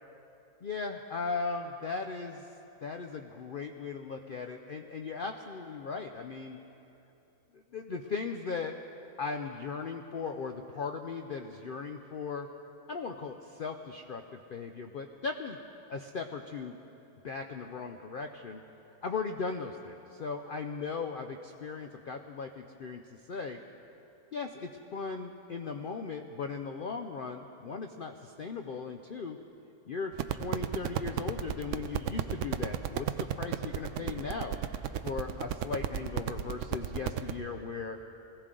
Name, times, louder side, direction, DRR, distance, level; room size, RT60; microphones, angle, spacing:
voice 1, 0.6-2.4 2.8-6.6 7.5-8.8 9.2-12.5 12.9-15.6 15.9-16.8 17.2-18.6 19.0-23.0 23.3-23.6 24.3-29.4 29.9-34.6 35.0-38.0, left 4 dB, 80° left, 5 dB, 0.4 m, -37 dB
sound 1, 30.1-37.3, right 10 dB, 65° right, 0.8 m, -33 dB
20.5 x 16.0 x 3.8 m, 2.8 s
omnidirectional pair, 1.6 m